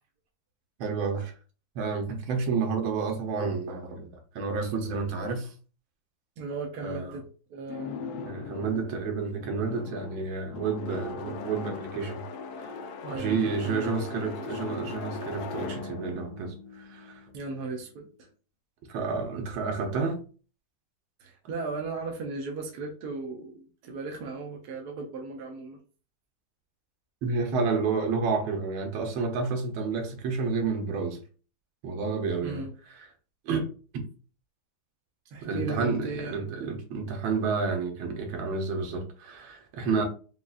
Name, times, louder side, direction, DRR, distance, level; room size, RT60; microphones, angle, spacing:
voice 1, 0.8-1.3 1.7-5.5 6.8-7.1 8.3-12.2 12.6-12.7 13.1-17.2 18.9-20.2 27.2-31.2 31.8-32.6 32.9-33.1 33.4-34.1 35.4-40.0, right 4 dB, 85° right, 1.6 m, -30 dB
voice 2, 6.4-7.2 7.5-8.1 13.0-14.6 17.3-18.3 21.2-25.8 32.4-32.7 35.3-36.7, right 3 dB, 65° right, 1.1 m, -37 dB
sound 1, 7.7-17.7, left 5 dB, 80° left, 0.8 m, -39 dB
5.1 x 2.3 x 2.3 m
omnidirectional pair, 2.1 m